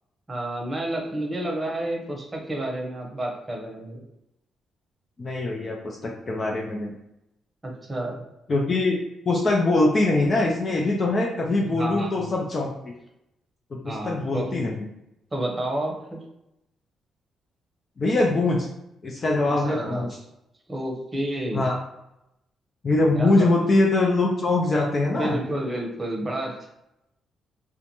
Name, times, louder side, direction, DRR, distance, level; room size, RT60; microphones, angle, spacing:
voice 1, 0.3-4.0 7.6-8.2 11.7-12.3 13.8-14.5 15.3-16.2 19.6-20.1 20.7-21.6 23.1-23.5 25.2-26.7, right 1 dB, 25° right, 0 dB, 0.8 m, -30 dB
voice 2, 5.2-7.0 8.5-9.0 9.3-12.9 13.7-14.9 18.0-18.7 19.0-20.1 21.5-21.8 22.8-25.4, left 2 dB, 40° left, -1 dB, 0.5 m, -23 dB
2.4 x 2.2 x 2.9 m, 0.87 s
cardioid pair, 75°, 0 cm